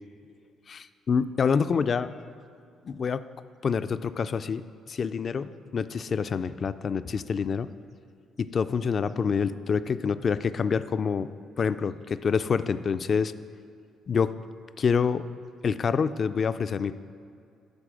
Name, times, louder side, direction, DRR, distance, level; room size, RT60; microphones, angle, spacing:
voice 1, 0.7-2.1 2.8-3.2 3.6-4.6 4.9-7.7 8.4-11.3 11.6-13.3 14.1-14.3 14.8-15.2 15.6-16.9, left 6 dB, 45° left, 13 dB, 0.3 m, -27 dB
12.0 x 4.1 x 6.1 m, 2.4 s
cardioid pair, 90°, 0 cm